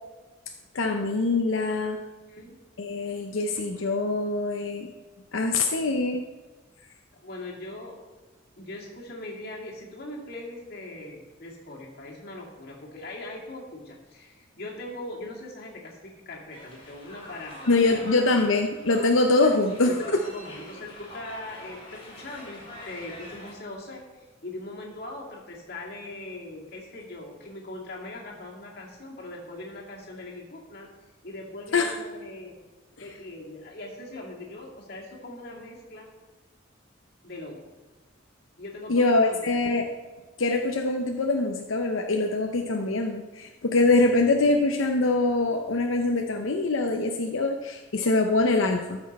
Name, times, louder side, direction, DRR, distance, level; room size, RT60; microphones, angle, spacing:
voice 1, 0.7-2.0 2.8-4.9 5.3-6.2 17.7-19.9 31.7-31.9 33.0-33.1 38.9-39.9 40.4-49.0, left 2 dB, 85° left, 3 dB, 0.7 m, -24 dB
voice 2, 2.3-2.6 7.2-8.0 8.6-18.0 19.9-30.9 31.2-32.6 33.0-36.1 37.2-37.6 38.6-39.8, left 1 dB, 50° left, -2 dB, 2.2 m, -40 dB
sound 1, 16.5-23.5, left 1 dB, 30° left, 2.8 m, -45 dB
13.0 x 6.2 x 4.2 m, 1.3 s
head